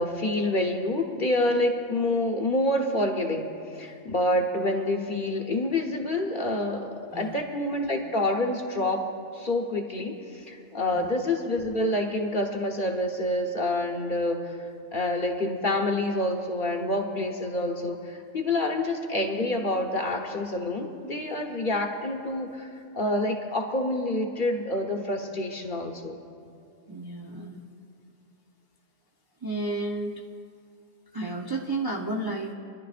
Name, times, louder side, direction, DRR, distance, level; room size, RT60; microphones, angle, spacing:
voice 1, 0.0-9.1 9.3-14.6 14.9-26.2, left 1 dB, 40° left, 2 dB, 1.2 m, -27 dB
voice 2, 26.9-27.6 29.4-30.2 31.1-32.5, right 2 dB, 25° right, -2 dB, 0.6 m, -32 dB
27.5 x 11.0 x 2.5 m, 2.4 s
omnidirectional pair, 1.4 m